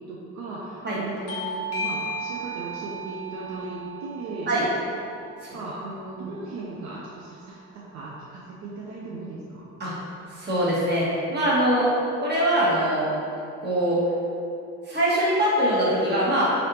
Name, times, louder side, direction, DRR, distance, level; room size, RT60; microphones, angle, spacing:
voice 1, 0.1-4.5 5.5-7.6 7.9-9.4, right 2 dB, 70° right, -5 dB, 0.5 m, -37 dB
Bell / Doorbell, 1.3-6.5, right 1 dB, 50° left, 0.6 m, -35 dB
voice 2, 10.3-11.9 12.2-13.1 13.6-14.0 14.8-16.5, right 1 dB, 35° right, -7 dB, 1.2 m, -23 dB
3.2 x 2.6 x 2.9 m, 2.6 s
supercardioid pair, 85°, 30 cm